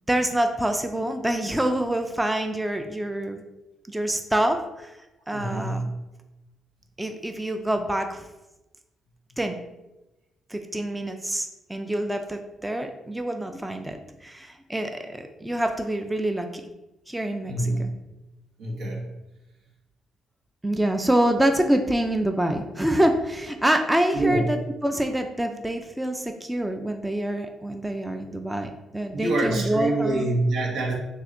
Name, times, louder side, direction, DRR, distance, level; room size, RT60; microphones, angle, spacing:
voice 1, 0.1-3.4 3.9-4.9 5.3-5.9 7.0-8.2 9.4-9.6 10.5-16.6 17.1-17.9 20.6-30.4, right 1 dB, 10° right, 6 dB, 0.4 m, -26 dB
voice 2, 5.3-5.8 17.5-17.8 18.6-19.1 24.1-24.4 29.1-30.9, right 2 dB, 85° right, -2 dB, 1.3 m, -25 dB
6.4 x 2.8 x 2.6 m, 0.99 s
cardioid pair, 90°, 0 cm